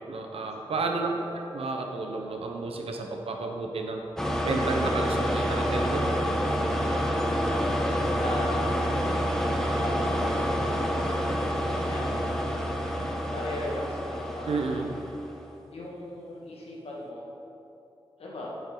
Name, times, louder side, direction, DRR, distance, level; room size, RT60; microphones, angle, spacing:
voice 1, 0.0-1.1 1.5-4.0 4.4-6.1 14.5-15.0, right 3 dB, 80° right, 3 dB, 0.9 m, -31 dB
voice 2, 1.1-1.4 7.5-8.8 9.8-11.3 11.7-12.8 13.3-14.7 15.7-17.3 18.2-18.5, left 1 dB, 85° left, -4 dB, 1.7 m, -38 dB
sound 1, 4.2-15.4, equal, 5° left, 1.0 m, -28 dB
8.9 x 7.3 x 3.9 m, 2.9 s
cardioid pair, 60°, 10 cm